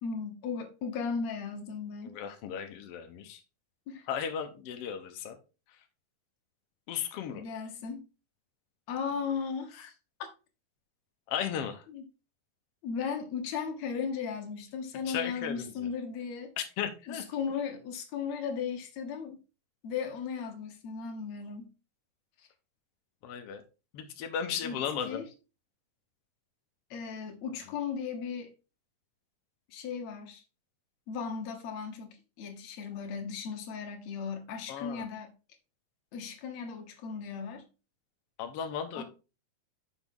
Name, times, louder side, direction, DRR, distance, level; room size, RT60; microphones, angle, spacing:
voice 1, 0.0-2.2 3.9-4.1 7.3-8.1 8.9-9.9 10.2-10.3 11.9-12.0 12.8-16.5 17.1-19.4 19.8-21.7 24.6-24.8 25.1-25.3 26.9-28.5 29.7-30.4 31.1-35.3 36.1-37.6 38.9-39.0, left 6 dB, 60° left, 2.0 m, -36 dB
voice 2, 2.0-3.4 4.1-5.4 6.9-7.4 11.3-11.8 15.1-15.9 16.6-17.2 23.2-23.6 23.9-25.3 34.7-35.1 38.4-39.0, left 8 dB, 80° left, 1.3 m, -35 dB
6.6 x 6.2 x 3.7 m
omnidirectional pair, 4.0 m